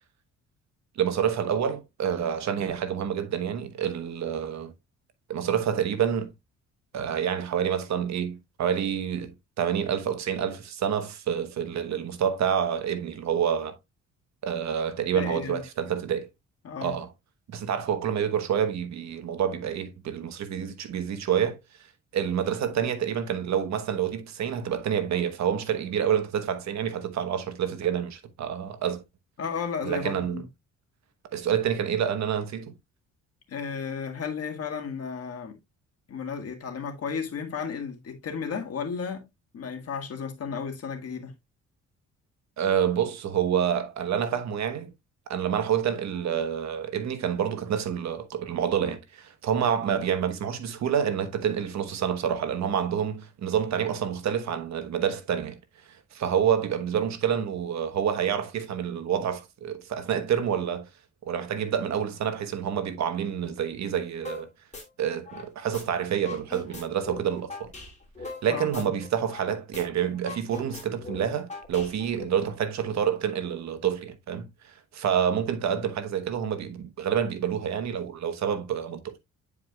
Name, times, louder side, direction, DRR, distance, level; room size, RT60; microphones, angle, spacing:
voice 1, 1.0-4.7 5.3-6.3 6.9-13.8 14.4-16.3 16.8-17.1 17.5-21.6 22.1-29.0 29.8-30.4 31.3-32.7 42.6-44.9 45.3-55.6 56.1-60.9 61.2-64.5 65.0-67.7 68.4-79.2, right 8 dB, 65° right, 1.2 m, -28 dB
voice 2, 15.1-15.6 16.6-16.9 29.4-30.4 33.5-35.6 36.1-39.3 39.5-41.3 68.5-68.9, left 6 dB, 55° left, 1.8 m, -33 dB
sound 1, 64.2-64.4 64.7-65.8 66.1-69.5 69.7-69.8 70.1-72.2, left 3 dB, 25° left, 2.6 m, -40 dB
9.4 x 4.8 x 2.3 m
cardioid pair, 90°, 30 cm